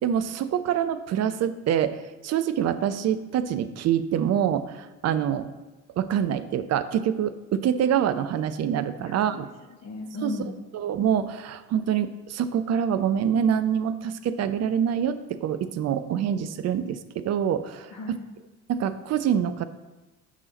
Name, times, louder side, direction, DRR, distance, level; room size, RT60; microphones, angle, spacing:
voice 1, 0.0-5.5 6.0-9.5 10.2-10.3 10.7-17.9 18.7-19.7, right 9 dB, 40° right, 11 dB, 0.6 m, -25 dB
voice 2, 9.0-10.6 17.9-18.3, left 2 dB, 35° left, 2 dB, 1.4 m, -37 dB
9.1 x 5.7 x 4.0 m, 1.1 s
figure-of-eight pair, 55°, 43 cm